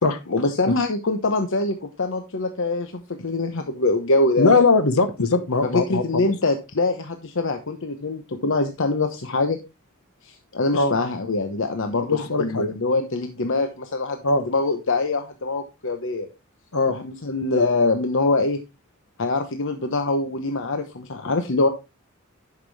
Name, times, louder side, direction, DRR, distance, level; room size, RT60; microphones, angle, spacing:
voice 1, 0.3-4.6 5.6-9.6 10.2-14.2 14.5-16.3 16.9-18.6 19.2-21.7, left 2 dB, 65° left, 6 dB, 1.0 m, -24 dB
voice 2, 4.4-6.3 10.7-10.9 11.9-12.7 14.2-14.4 16.7-17.0, left 3 dB, 85° left, 9 dB, 1.2 m, -20 dB
10.5 x 5.9 x 3.3 m, 0.25 s
head